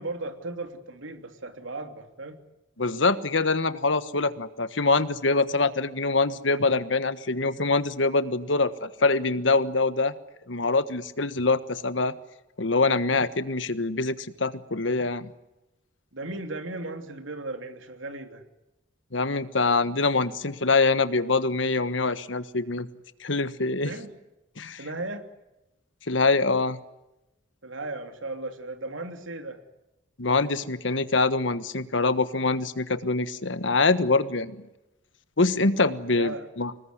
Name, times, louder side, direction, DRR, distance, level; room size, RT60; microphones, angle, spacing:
voice 1, 0.0-2.4 16.1-18.4 23.8-24.1 24.8-25.3 27.6-29.6 36.1-36.5, right 2 dB, 85° right, 7 dB, 3.0 m, -36 dB
voice 2, 2.8-10.1 10.5-12.1 12.6-15.3 19.1-22.9 23.2-23.9 24.6-24.8 26.1-26.8 30.2-34.6 35.4-36.7, left 3 dB, 70° left, 13 dB, 1.4 m, -24 dB
26.0 x 20.5 x 9.6 m, 0.96 s
head